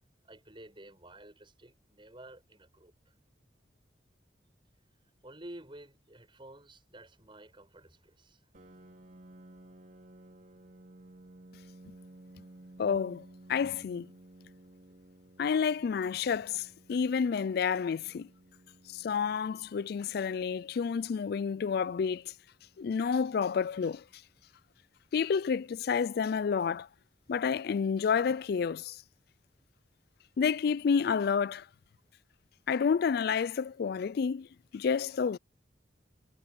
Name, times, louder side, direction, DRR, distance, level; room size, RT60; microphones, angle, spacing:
voice 1, 0.2-3.1 5.2-8.4 12.6-12.7, right 1 dB, 25° right, 7.7 m, -51 dB
Piano, 8.5-24.0, right 1 dB, 45° right, 2.7 m, -56 dB
voice 2, 12.8-14.1 15.4-18.3 18.9-22.3 22.8-24.0 25.1-26.9 27.3-29.0 30.4-31.7 32.7-34.5 34.7-35.4, left 6 dB, 55° left, 0.3 m, -29 dB
head